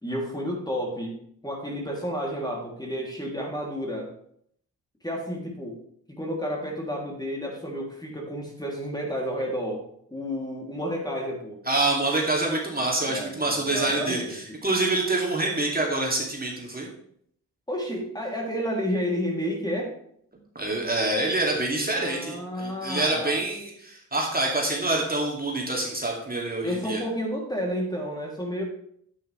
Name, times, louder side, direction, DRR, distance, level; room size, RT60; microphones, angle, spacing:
voice 1, 0.0-4.1 5.0-5.8 6.1-9.8 10.1-11.6 13.0-14.4 17.7-19.9 21.9-23.4 26.6-28.6, equal, 10° left, -1 dB, 3.0 m, -31 dB
voice 2, 11.7-16.9 20.5-27.0, right 2 dB, 25° right, -2 dB, 2.6 m, -26 dB
8.9 x 8.9 x 3.4 m, 0.68 s
supercardioid pair, 40°, 36 cm